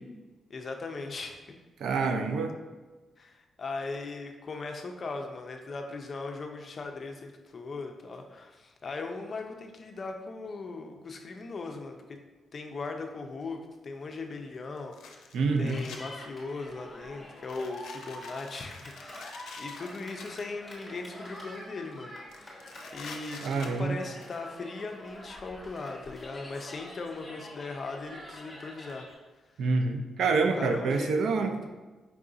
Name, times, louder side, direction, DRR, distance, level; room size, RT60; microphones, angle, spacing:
voice 1, 0.5-1.4 3.2-12.2 12.5-13.6 13.8-22.6 22.9-29.1 30.4-31.7, left 3 dB, 35° left, 4 dB, 0.4 m, -39 dB
voice 2, 1.8-2.5 15.3-15.8 23.4-24.0 29.6-31.5, right 4 dB, 70° right, 6 dB, 0.4 m, -27 dB
sound 1, 13.4-13.5 14.8-16.0 16.5-16.8 17.4-20.3 21.0-21.6 21.9-22.0 22.3-24.4, left 5 dB, 90° left, 0.5 m, -47 dB
Cheering, 15.5-29.1, left 1 dB, 15° left, 1.0 m, -46 dB
4.7 x 2.4 x 3.8 m, 1.2 s
cardioid pair, 140°, 0 cm